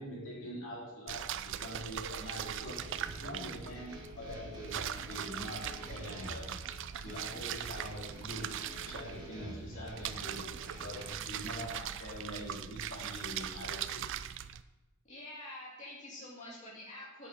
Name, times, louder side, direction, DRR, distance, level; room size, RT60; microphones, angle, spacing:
voice 1, 0.0-6.6 7.0-14.1, equal, 60° left, -4 dB, 2.8 m, -44 dB
sound 1, 1.1-14.6, right 9 dB, 60° right, 0.4 m, -41 dB
sound 2, 2.7-11.4, equal, 20° right, 1.5 m, -49 dB
voice 2, 15.0-17.3, left 1 dB, 35° left, -6 dB, 2.4 m, -47 dB
8.2 x 7.0 x 5.0 m, 1.1 s
head